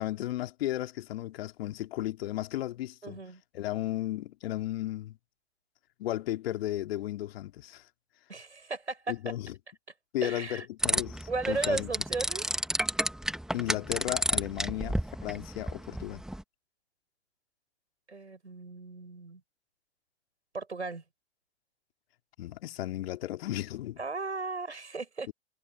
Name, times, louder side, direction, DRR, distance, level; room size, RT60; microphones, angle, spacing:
voice 1, 0.0-3.2 3.5-5.2 6.0-7.9 9.1-9.5 10.1-11.9 13.5-15.0 15.2-16.2 22.4-24.0 25.3-25.4, left 14 dB, 60° left, 2.6 m, -34 dB
voice 2, 3.0-3.4 8.3-9.1 10.2-10.6 11.3-12.5 18.1-19.4 20.5-21.0 24.0-25.3, right 3 dB, 90° right, 6.8 m, -35 dB
sound 1, 10.8-16.4, right 1 dB, ahead, 1.8 m, -31 dB
figure-of-eight pair, 90°, 33 cm